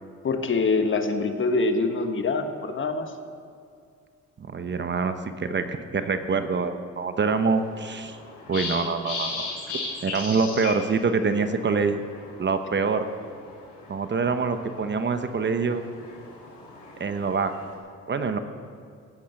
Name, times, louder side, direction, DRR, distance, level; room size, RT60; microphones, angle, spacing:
voice 1, 0.2-3.1, left 3 dB, 40° left, 6 dB, 1.5 m, -24 dB
voice 2, 4.4-8.2 8.5-9.5 10.0-12.0 12.4-13.1 13.9-15.8 17.0-17.5 18.1-18.4, right 4 dB, 35° right, 8 dB, 1.0 m, -25 dB
sound 1, 7.2-17.7, left 3 dB, 85° left, 5.1 m, -38 dB
17.0 x 8.5 x 7.8 m, 2.2 s
cardioid pair, 90°, 30 cm